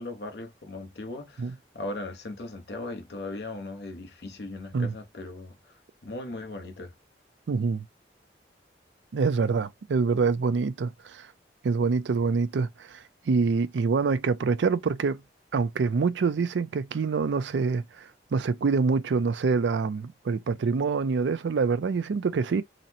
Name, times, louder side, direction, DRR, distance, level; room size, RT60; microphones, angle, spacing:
voice 1, 0.0-5.7 6.0-6.9, left 2 dB, 70° left, 0.8 m, -38 dB
voice 2, 7.5-7.8 9.1-11.3 11.6-15.2 15.5-22.6, right 4 dB, 85° right, 0.4 m, -26 dB
3.9 x 2.1 x 2.8 m
head